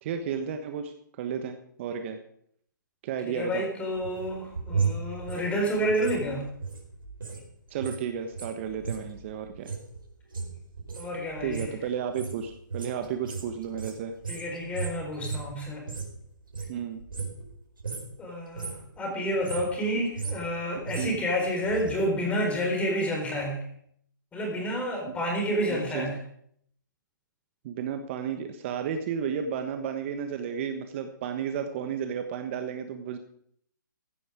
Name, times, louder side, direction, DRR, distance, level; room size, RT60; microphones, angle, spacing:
voice 1, 0.0-2.2 3.0-3.6 7.7-9.7 11.4-14.1 16.7-17.0 21.0-21.3 25.1-25.2 25.7-26.1 27.6-33.2, right 7 dB, 35° right, 7 dB, 1.3 m, -33 dB
voice 2, 3.3-6.5 11.0-11.7 14.3-15.9 18.2-18.7 19.0-23.6 24.3-26.2, equal, 10° left, 1 dB, 4.5 m, -29 dB
sound 1, 3.9-7.4 7.7-16.2 16.5-17.5 17.8-18.2 18.4-18.9 19.3-21.9 22.2-22.3, right 5 dB, 85° right, 4.5 m, -35 dB
15.5 x 11.0 x 5.1 m, 0.66 s
hypercardioid pair, 145°, 11 cm